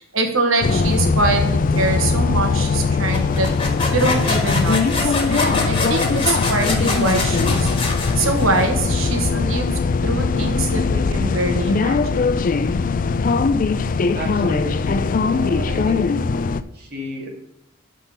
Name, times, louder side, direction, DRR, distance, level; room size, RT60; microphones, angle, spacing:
voice 1, 0.0-3.5 3.9-7.7 8.1-9.7 10.0-12.4, right 2 dB, 75° right, 4 dB, 1.4 m, -23 dB
sound 1, 0.6-16.6, left 4 dB, 40° left, 0.4 m, -20 dB
sound 2, 3.1-8.8, left 3 dB, 25° left, 1.7 m, -26 dB
voice 2, 14.1-16.1 16.7-17.3, equal, 50° right, 0 dB, 1.8 m, -32 dB
11.0 x 3.8 x 5.4 m, 0.79 s
head